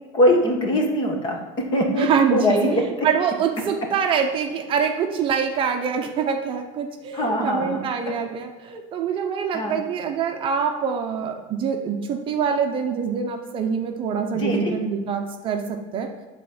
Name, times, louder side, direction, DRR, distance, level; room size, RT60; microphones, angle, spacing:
voice 1, 0.1-3.1 7.1-8.1 9.5-9.8 14.3-14.7, left 1 dB, 30° left, 2 dB, 1.5 m, -22 dB
voice 2, 2.0-16.1, right 6 dB, 30° right, 4 dB, 0.8 m, -25 dB
10.0 x 4.2 x 7.1 m, 1.2 s
cardioid pair, 165°, 16 cm